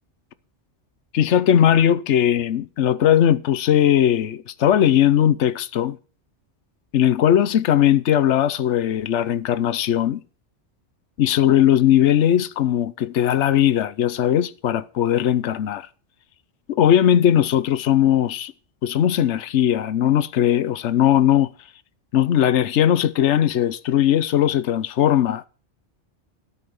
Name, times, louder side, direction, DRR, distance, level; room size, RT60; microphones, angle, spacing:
voice 1, 1.1-6.0 6.9-10.2 11.2-15.9 16.7-18.5 18.8-21.5 22.1-25.5, left 10 dB, 75° left, 1.1 m, -19 dB
13.5 x 8.4 x 7.1 m
omnidirectional pair, 1.2 m